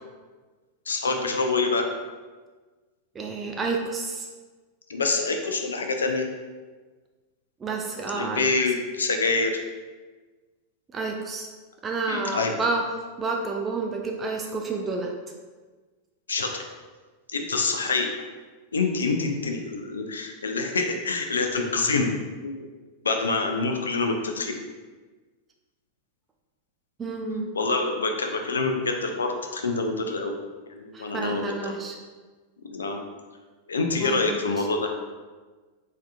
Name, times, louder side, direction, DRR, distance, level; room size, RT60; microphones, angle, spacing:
voice 1, 0.9-1.9 4.9-6.2 8.1-9.5 12.1-12.5 16.3-16.6 17.3-18.1 18.7-22.1 22.4-22.6 23.0-24.5 27.6-30.3 30.7-31.7 32.7-33.0 33.7-34.9, left 3 dB, 70° left, 4 dB, 0.3 m, -26 dB
voice 2, 3.1-4.3 7.6-8.5 10.9-11.5 11.8-12.9 13.2-15.1 27.0-27.5 30.9-32.0 34.0-34.7, right 3 dB, 20° right, 1 dB, 0.3 m, -30 dB
3.3 x 2.7 x 2.3 m, 1.4 s
figure-of-eight pair, 90°, 0 cm